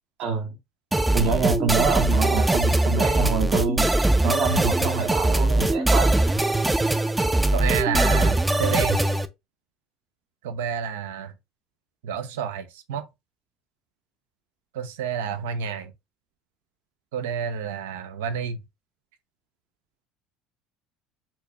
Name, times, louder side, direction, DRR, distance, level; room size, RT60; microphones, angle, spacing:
voice 1, 0.2-0.5 1.1-3.9 4.2-6.2, right 5 dB, 60° right, 0.9 m, -26 dB
sound 1, 0.9-9.3, right 2 dB, 10° right, 0.4 m, -21 dB
voice 2, 4.5-4.9 7.5-9.1 10.4-11.3 12.0-13.0 14.7-15.9 17.1-18.6, right 7 dB, 90° right, 0.5 m, -29 dB
4.3 x 2.2 x 2.8 m
supercardioid pair, 95°, 0 cm